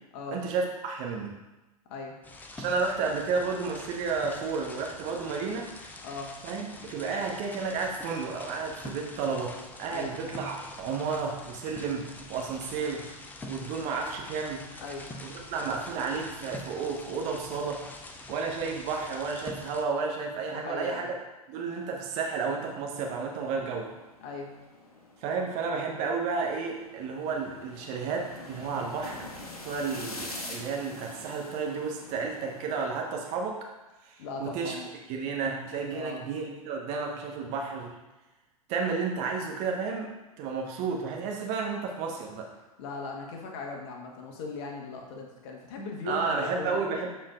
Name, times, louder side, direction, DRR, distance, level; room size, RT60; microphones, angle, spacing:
voice 1, 0.3-1.3 2.6-5.7 6.4-9.5 9.8-13.0 13.5-14.6 15.2-17.8 18.3-21.1 21.5-23.9 25.2-29.3 29.6-33.6 34.0-34.1 34.4-34.8 35.1-37.9 38.7-40.1 40.4-42.5 46.0-47.1, right 5 dB, 40° right, 0 dB, 1.3 m, -32 dB
sound 1, 2.2-19.8, left 2 dB, 10° left, 0.6 m, -45 dB
voice 2, 20.5-21.1 24.2-24.5 34.2-34.9 35.9-36.2 42.8-46.8, left 3 dB, 45° left, 1 dB, 1.4 m, -38 dB
sound 2, 21.5-32.9, left 2 dB, 75° left, 1.2 m, -46 dB
13.0 x 4.4 x 2.5 m, 1.1 s
figure-of-eight pair, 95°, 19 cm